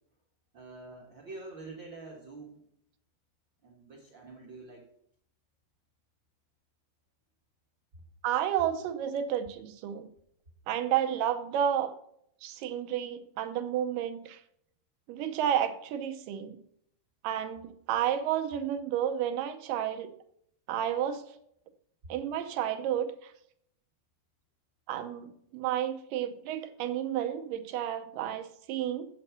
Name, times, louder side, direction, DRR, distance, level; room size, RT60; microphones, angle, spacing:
voice 1, 0.5-2.6 3.6-4.9, right 3 dB, 50° right, 1 dB, 1.5 m, -46 dB
voice 2, 8.2-10.1 10.7-11.9 12.4-14.4 15.1-16.6 17.2-20.1 20.7-21.2 22.1-23.3 24.9-29.1, right 10 dB, 75° right, 8 dB, 2.1 m, -31 dB
8.7 x 7.5 x 5.8 m, 0.70 s
omnidirectional pair, 4.4 m